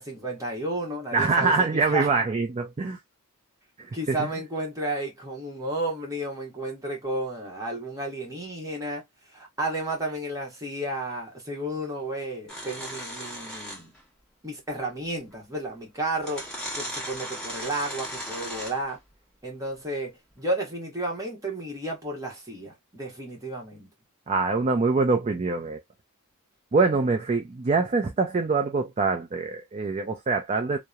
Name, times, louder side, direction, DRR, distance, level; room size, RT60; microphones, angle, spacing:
voice 1, 0.0-2.1 3.9-9.0 9.3-13.9 14.4-16.5 16.8-19.0 19.4-23.9, right 1 dB, 15° right, 1.0 m, -32 dB
voice 2, 1.1-3.0 4.1-4.3 24.3-25.8 26.7-30.8, right 4 dB, 30° right, 0.4 m, -24 dB
sound 1, 12.5-14.0 15.3-15.4 16.2-18.9, equal, 5° left, 1.2 m, -36 dB
2.8 x 2.1 x 2.2 m
head